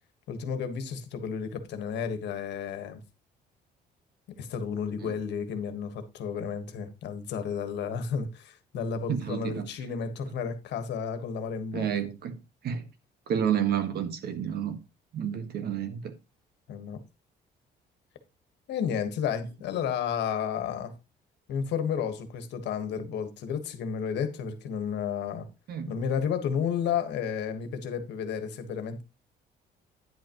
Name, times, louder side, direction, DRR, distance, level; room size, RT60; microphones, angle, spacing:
voice 1, 0.3-3.0 4.4-11.9 16.7-17.0 18.7-20.9 21.5-25.5 25.9-29.0, left 7 dB, 80° left, 1.4 m, -32 dB
voice 2, 9.1-9.7 11.7-12.9 13.3-14.8 15.1-16.1 25.7-25.9, right 9 dB, 65° right, 1.4 m, -30 dB
10.0 x 7.9 x 3.0 m
cardioid pair, 140°, 18 cm